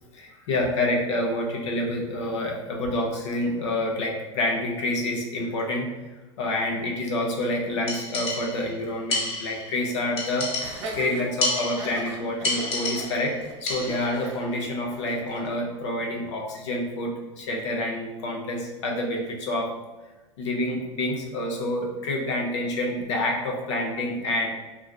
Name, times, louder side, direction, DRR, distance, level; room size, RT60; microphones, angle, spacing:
voice 1, 0.1-5.9 6.4-10.5 10.9-13.3 13.6-19.7 20.4-24.5, left 1 dB, 75° left, 0 dB, 0.6 m, -28 dB
sound 1, 7.9-8.7 9.1-9.7 10.2-11.0 11.4-12.1 12.4-13.3 13.7-14.2, left 2 dB, 40° left, 1.0 m, -30 dB
Laughter, 10.6-15.5, right 3 dB, 80° right, 0.5 m, -39 dB
2.4 x 2.3 x 2.2 m, 1.1 s
hypercardioid pair, 95°, 15 cm